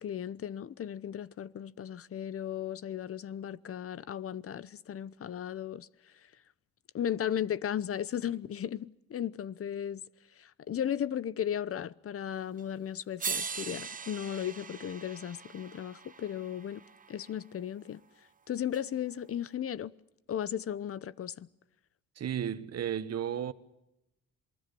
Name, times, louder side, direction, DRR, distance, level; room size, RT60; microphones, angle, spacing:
voice 1, 0.0-5.9 6.9-10.0 10.4-16.8 17.1-18.0 18.5-19.9 20.3-21.5, left 9 dB, 50° left, 0.9 m, -36 dB
sound 1, 12.6-12.7 13.2-17.4 18.7-18.8, right 5 dB, 25° right, 1.0 m, -40 dB
voice 2, 22.2-23.5, right 9 dB, 55° right, 1.4 m, -33 dB
27.5 x 20.0 x 6.9 m
cardioid pair, 90°, 30 cm